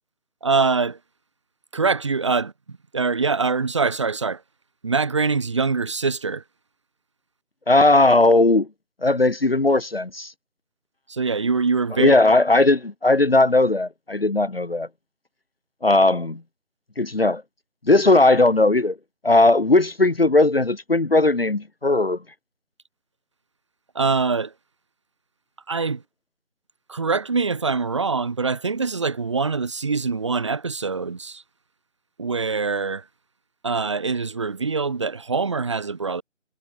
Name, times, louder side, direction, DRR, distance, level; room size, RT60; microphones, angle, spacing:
voice 1, 0.4-1.0 1.7-4.4 4.8-6.4 11.1-12.2 23.9-24.5 25.7-26.0 26.9-31.4 32.2-33.0 33.6-36.2, right 4 dB, 20° right, 3.8 m, -24 dB
voice 2, 7.7-8.7 9.0-10.3 12.0-14.9 15.8-16.4 17.0-17.4 17.9-19.0 19.2-22.2, left 2 dB, 45° left, 1.3 m, -18 dB
figure-of-eight pair, 165°, 39 cm